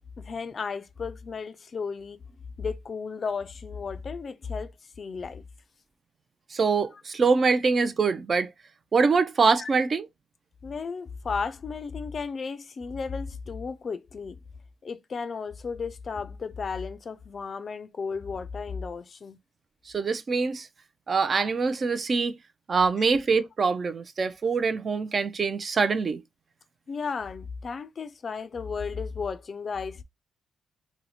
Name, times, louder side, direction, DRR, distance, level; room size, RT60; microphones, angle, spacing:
voice 1, 0.2-2.2 2.6-4.7 5.0-5.4 6.9-7.0 9.6-9.7 10.6-14.4 14.8-19.4 23.0-23.1 26.9-30.0, left 5 dB, 45° left, 0.4 m, -34 dB
voice 2, 6.5-8.5 8.9-10.1 19.9-20.7 21.1-22.3 22.7-26.2, right 4 dB, 40° right, 0.4 m, -24 dB
2.7 x 2.1 x 4.0 m
cardioid pair, 90°, 0 cm